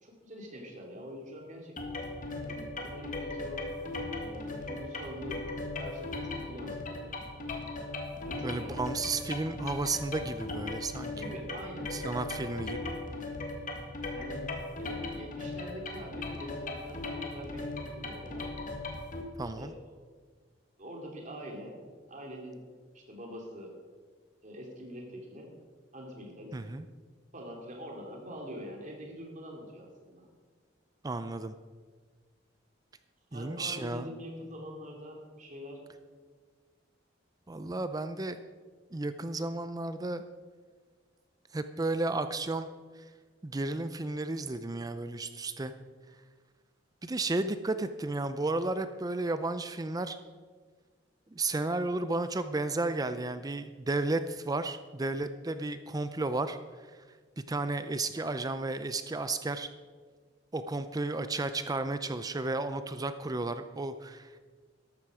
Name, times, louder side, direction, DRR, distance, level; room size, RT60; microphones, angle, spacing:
voice 1, 0.0-2.0 2.5-3.7 4.1-5.5 5.8-7.1 8.3-9.1 11.1-12.5 14.1-18.5 19.6-19.9 20.8-21.8 22.1-22.6 22.9-23.7 24.4-25.5 25.9-26.6 27.3-30.3 33.3-35.9, equal, 40° right, 0 dB, 2.6 m, -45 dB
sound 1, 1.8-19.2, left 2 dB, 45° left, 2.0 m, -38 dB
voice 2, 8.4-11.1 11.9-12.9 19.4-19.7 26.5-26.9 31.0-31.5 33.3-34.1 37.5-38.4 38.9-40.2 41.5-42.7 43.4-45.7 47.0-50.2 51.3-56.6 57.5-59.7 60.5-64.4, right 2 dB, 20° right, 11 dB, 0.5 m, -33 dB
13.5 x 12.0 x 4.9 m, 1.5 s
head